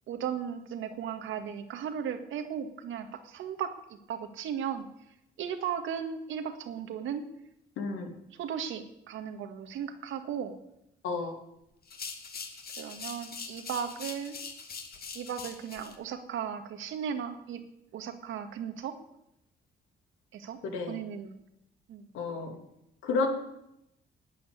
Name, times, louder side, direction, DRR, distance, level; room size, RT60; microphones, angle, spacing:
voice 1, 0.1-3.7 4.1-4.9 5.4-7.2 8.4-10.6 12.8-14.4 15.1-17.6 17.9-19.0 20.3-20.6 20.9-21.4 21.9-22.1, right 8 dB, 80° right, 8 dB, 1.8 m, -36 dB
voice 2, 7.8-8.1 11.0-11.4 20.6-21.0 22.1-22.6 23.0-23.3, left 4 dB, 90° left, 4 dB, 2.8 m, -31 dB
sound 1, 11.8-15.9, left 5 dB, 50° left, 2.5 m, -42 dB
12.5 x 8.8 x 9.7 m, 0.82 s
cardioid pair, 90°, 20 cm